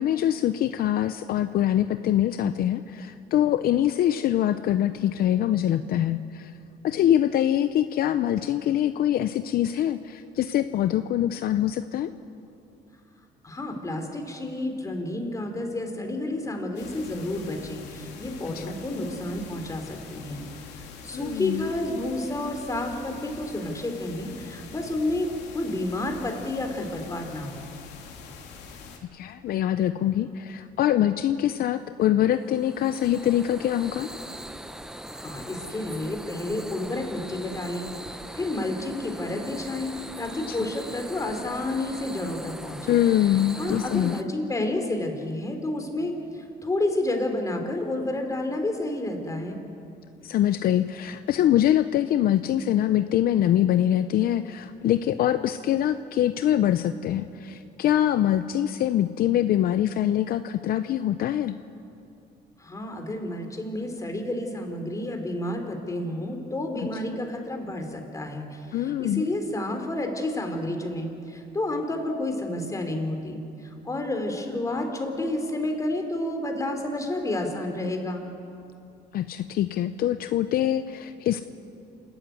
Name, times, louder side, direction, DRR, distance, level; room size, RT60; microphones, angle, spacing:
voice 1, 0.0-6.5 6.8-12.1 18.5-18.6 21.1-21.7 29.1-34.1 40.5-40.6 42.9-44.2 50.2-61.6 68.7-69.3 79.1-81.4, left 11 dB, 60° left, 11 dB, 0.7 m, -24 dB
voice 2, 13.4-20.4 21.0-27.6 35.1-43.0 43.6-49.6 62.6-78.2, left 1 dB, 20° left, 4 dB, 3.7 m, -30 dB
sound 1, 16.7-29.0, left 5 dB, 85° left, 2.9 m, -44 dB
sound 2, 32.3-44.2, right 1 dB, 5° right, 0.9 m, -40 dB
28.5 x 13.0 x 9.4 m, 2.6 s
cardioid pair, 110°, 17 cm